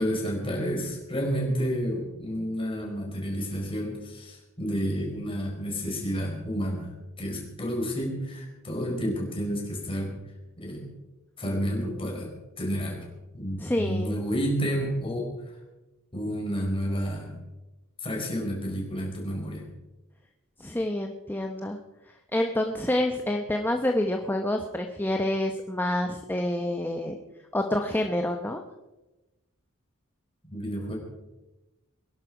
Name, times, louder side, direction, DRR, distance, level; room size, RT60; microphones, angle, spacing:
voice 1, 0.0-6.9 7.2-10.1 10.6-10.9 11.4-13.1 13.3-15.3 16.1-17.4 18.0-19.6 30.5-31.0, equal, 25° left, 0 dB, 4.6 m, -30 dB
voice 2, 13.6-14.2 20.6-21.8 22.3-27.2 27.5-28.6, left 1 dB, 10° left, 4 dB, 0.9 m, -27 dB
21.5 x 11.5 x 5.0 m, 1.0 s
head